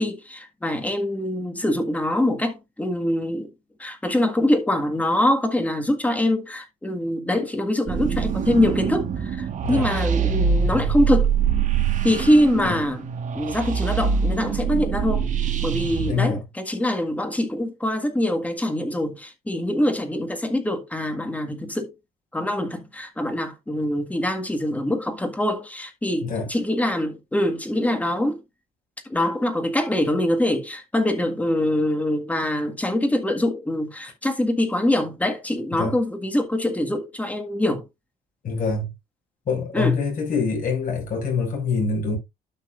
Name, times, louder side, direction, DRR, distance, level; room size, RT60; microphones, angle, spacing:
voice 1, 0.0-3.5 3.8-11.3 12.0-13.0 13.3-21.9 22.3-28.4 29.1-37.8 39.7-40.0, left 1 dB, 10° left, 1.7 m, -24 dB
sound 1, 7.9-16.1, right 6 dB, 50° right, 1.5 m, -24 dB
voice 2, 16.1-16.4 26.2-26.5 35.7-35.9 38.4-38.9 39.5-42.2, left 5 dB, 55° left, 5.9 m, -25 dB
12.0 x 6.0 x 2.5 m
cardioid pair, 110°, 17 cm